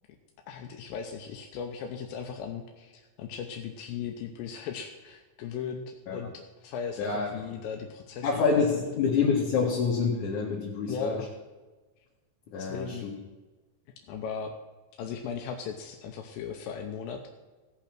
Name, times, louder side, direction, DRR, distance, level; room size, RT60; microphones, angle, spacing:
voice 1, 0.5-8.9 10.9-11.3 12.6-13.1 14.1-14.5 14.9-17.3, left 6 dB, 85° left, 3 dB, 2.6 m, -37 dB
voice 2, 7.0-7.3 8.2-11.2 12.5-13.1, left 5 dB, 65° left, -5 dB, 3.1 m, -27 dB
17.0 x 5.8 x 5.9 m, 1.2 s
omnidirectional pair, 4.1 m